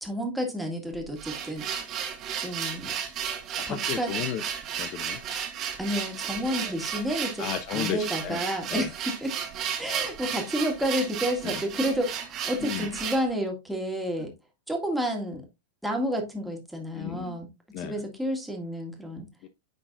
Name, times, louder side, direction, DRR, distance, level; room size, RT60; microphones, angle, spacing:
voice 1, 0.0-1.6 2.4-2.9 3.7-4.1 5.8-7.4 7.7-9.3 9.8-14.3 14.7-15.4 15.8-17.5 17.8-19.3, equal, ahead, 1.9 m, -30 dB
sound 1, 0.9-13.3, right 8 dB, 35° right, 1.4 m, -33 dB
voice 2, 3.6-4.4 4.8-5.2 6.6-6.7 7.4-8.4 8.7-8.9 11.4-11.6 12.6-12.9 16.9-17.4 17.7-18.0 19.4-19.5, left 10 dB, 40° left, 0.5 m, -33 dB
9.7 x 3.9 x 2.5 m
figure-of-eight pair, 95°, 0 cm